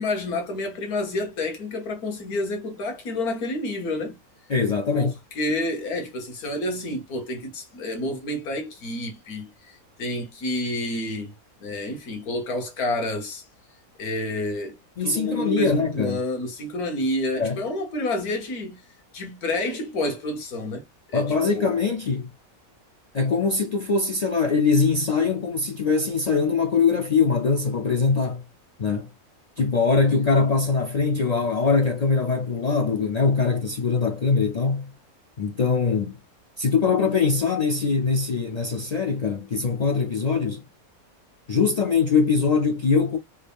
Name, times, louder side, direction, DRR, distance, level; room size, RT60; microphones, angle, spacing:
voice 1, 0.0-4.2 4.9-11.3 11.6-13.4 14.0-18.8 19.1-20.9 21.1-21.7, left 1 dB, 85° left, 1.7 m, -29 dB
voice 2, 4.5-5.1 15.0-16.2 17.3-17.6 21.1-22.3 23.1-28.4 28.8-29.1 29.6-34.9 35.4-36.2 36.6-40.6 41.5-43.2, left 4 dB, 60° left, 0.4 m, -22 dB
3.7 x 2.2 x 3.5 m
omnidirectional pair, 1.5 m